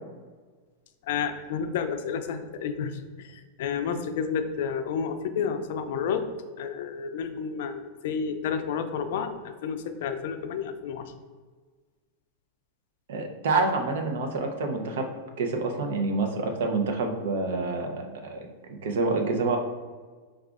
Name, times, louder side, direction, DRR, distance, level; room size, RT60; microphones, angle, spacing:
voice 1, 1.1-2.9 3.2-3.3 3.6-6.3 6.6-11.0, left 6 dB, 70° left, 7 dB, 0.4 m, -30 dB
voice 2, 13.1-15.1 15.4-19.6, right 3 dB, 80° right, 3 dB, 0.6 m, -27 dB
4.9 x 2.3 x 2.4 m, 1.4 s
supercardioid pair, 140°, 0 cm